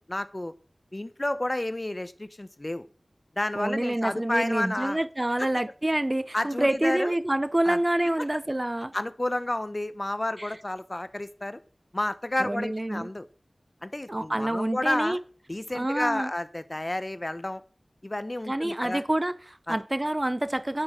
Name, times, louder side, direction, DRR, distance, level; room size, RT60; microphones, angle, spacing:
voice 1, 0.1-0.5 0.9-2.9 3.4-5.0 6.3-7.1 7.7-7.8 8.2-8.3 8.9-11.6 11.9-13.3 13.8-15.2 15.5-17.6 18.0-19.0 19.7-19.8, left 1 dB, 35° left, 1.0 m, -30 dB
voice 2, 3.6-8.9 10.4-10.5 12.4-13.1 14.1-15.2 15.7-16.3 18.5-20.8, right 1 dB, 25° right, 0.5 m, -27 dB
11.0 x 6.5 x 9.1 m
wide cardioid pair, 55°, 0 cm